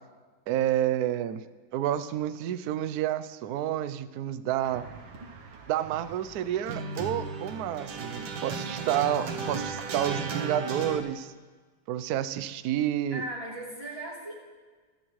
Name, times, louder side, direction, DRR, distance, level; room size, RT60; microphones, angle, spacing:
voice 1, 0.5-1.4 1.7-4.9 5.7-11.3 11.9-13.2, right 11 dB, 70° right, 14 dB, 0.9 m, -29 dB
sound 1, 4.6-11.0, right 4 dB, 85° right, 1.8 m, -36 dB
voice 2, 13.1-14.3, right 1 dB, 15° right, -6 dB, 3.4 m, -37 dB
23.5 x 9.9 x 3.2 m, 1.4 s
omnidirectional pair, 2.1 m